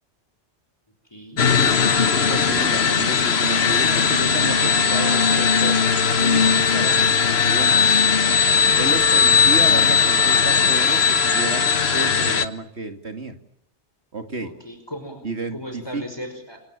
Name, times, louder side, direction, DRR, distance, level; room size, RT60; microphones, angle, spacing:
voice 1, 1.1-1.4 14.4-15.2 15.5-16.6, equal, 20° left, 6 dB, 5.2 m, -36 dB
sound 1, 1.4-12.5, left 6 dB, 65° left, 1.5 m, -18 dB
voice 2, 2.3-5.8 6.2-7.9 8.7-13.4 14.1-14.5 15.2-16.0, right 3 dB, 70° right, 7 dB, 3.0 m, -31 dB
28.0 x 26.0 x 7.3 m, 0.73 s
omnidirectional pair, 1.2 m